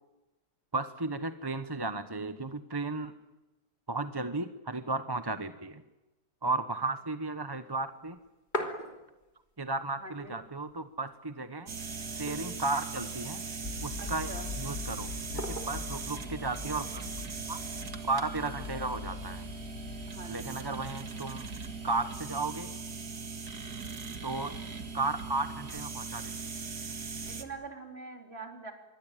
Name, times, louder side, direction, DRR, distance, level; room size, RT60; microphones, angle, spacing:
voice 1, 0.7-3.1 3.9-5.8 6.4-8.2 9.6-11.7 12.1-13.4 13.8-17.0 17.5-17.6 18.0-19.4 20.3-21.5 21.8-22.7 24.2-24.5 24.9-26.3, right 3 dB, 20° right, 10 dB, 0.9 m, -34 dB
sound 1, 8.0-9.5 9.9-10.0 10.2-11.0 11.4-11.5 12.0-12.8 13.5-14.2 15.4-16.0 17.1-17.6, equal, 30° left, 3.2 m, -39 dB
voice 2, 10.0-10.4 14.0-14.5 20.1-20.6 27.2-28.7, right 3 dB, 40° right, 2 dB, 4.4 m, -44 dB
sound 2, 11.7-27.4, right 4 dB, 80° right, 2.3 m, -40 dB
sound 3, 13.6-20.2, left 5 dB, 60° left, 3.1 m, -43 dB
26.5 x 23.0 x 9.1 m, 1.0 s
omnidirectional pair, 1.6 m